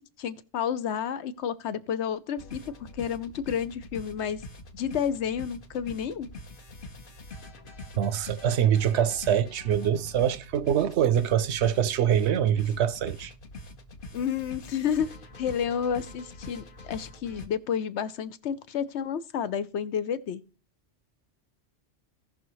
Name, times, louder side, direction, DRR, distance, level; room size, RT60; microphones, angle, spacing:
voice 1, 0.2-4.4 4.7-6.3 14.1-15.1 15.4-20.4, left 8 dB, 75° left, 1.0 m, -30 dB
sound 1, 2.4-17.5, left 2 dB, 50° left, 1.1 m, -44 dB
voice 2, 8.0-13.3, right 9 dB, 75° right, 0.9 m, -24 dB
17.0 x 5.7 x 3.1 m
omnidirectional pair, 1.2 m